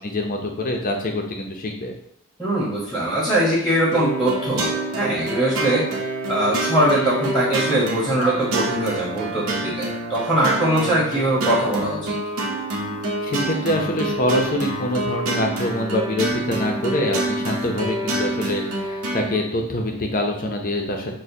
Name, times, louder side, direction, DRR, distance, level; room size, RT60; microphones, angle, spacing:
voice 1, 0.0-1.9 13.2-21.1, left 1 dB, 40° left, 2 dB, 0.6 m, -25 dB
voice 2, 2.4-5.8 6.3-12.1, right 1 dB, ahead, -6 dB, 1.1 m, -21 dB
sound 1, 3.9-19.4, right 1 dB, 85° right, 0.8 m, -27 dB
6.2 x 2.2 x 2.7 m, 0.73 s
head